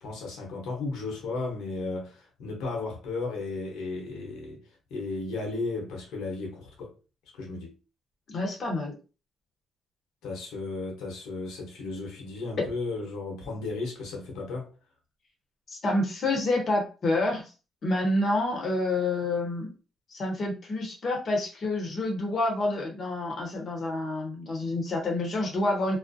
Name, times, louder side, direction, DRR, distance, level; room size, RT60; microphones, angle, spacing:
voice 1, 0.0-4.6 4.9-7.0 7.3-7.8 10.2-14.7, left 3 dB, 85° left, 0.9 m, -34 dB
voice 2, 8.3-8.9 15.7-17.4 17.8-19.7 20.1-26.0, left 2 dB, 50° left, 0.8 m, -28 dB
2.4 x 2.0 x 2.6 m
cardioid pair, 90°, 0 cm